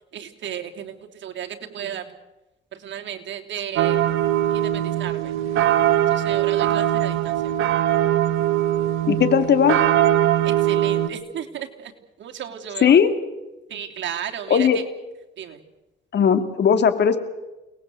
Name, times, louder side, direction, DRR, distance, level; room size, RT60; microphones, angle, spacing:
voice 1, 0.1-2.0 2.7-4.2 4.5-5.4 6.1-7.5 10.4-11.9 12.2-13.0 13.7-14.8 15.4-15.6, right 9 dB, 70° right, 3 dB, 3.2 m, -34 dB
sound 1, 3.8-11.1, right 12 dB, 90° right, 1.6 m, -21 dB
voice 2, 9.1-9.8 12.8-13.1 14.5-14.8 16.1-17.2, left 8 dB, 60° left, 10 dB, 2.6 m, -17 dB
29.0 x 19.5 x 7.8 m, 1.0 s
cardioid pair, 90°, 20 cm